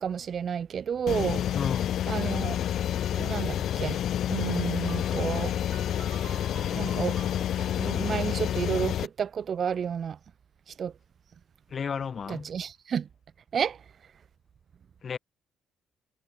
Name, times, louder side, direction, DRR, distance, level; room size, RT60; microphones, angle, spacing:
voice 1, 0.0-1.4 2.1-2.6 3.1-4.0 4.3-5.5 6.7-7.4 7.8-10.2 10.8-10.9 12.3-13.1 13.5-13.8, right 7 dB, 40° right, 1.4 m, -31 dB
sound 1, 1.1-9.1, left 10 dB, 55° left, 0.5 m, -29 dB
voice 2, 1.5-2.0 11.7-12.5 15.0-15.2, left 6 dB, 35° left, 2.2 m, -33 dB
sound 2, 4.8-8.0, right 10 dB, 55° right, 4.2 m, -48 dB
cardioid pair, 150°, 0 cm